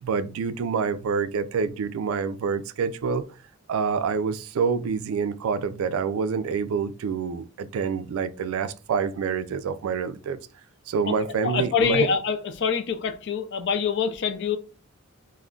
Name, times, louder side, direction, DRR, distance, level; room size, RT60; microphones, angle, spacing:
voice 1, 0.0-3.2 3.7-10.4 10.9-12.1, right 6 dB, 75° right, 0.3 m, -27 dB
voice 2, 11.4-14.6, left 6 dB, 55° left, 0.4 m, -25 dB
2.3 x 2.1 x 3.6 m
head